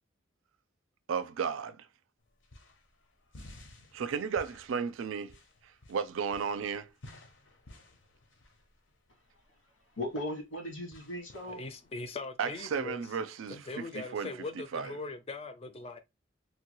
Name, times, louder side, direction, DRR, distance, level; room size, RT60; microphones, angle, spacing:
voice 1, 1.1-1.8 3.9-5.3 5.9-6.9 12.4-13.6 13.9-14.3 14.7-14.9, right 6 dB, 80° right, 0.4 m, -33 dB
sound 1, 2.2-12.1, left 1 dB, 70° left, 0.7 m, -55 dB
voice 2, 9.9-11.6, left 1 dB, 85° left, 1.4 m, -38 dB
voice 3, 11.5-13.0 13.5-16.0, left 3 dB, 30° left, 0.4 m, -41 dB
3.1 x 2.3 x 3.0 m
head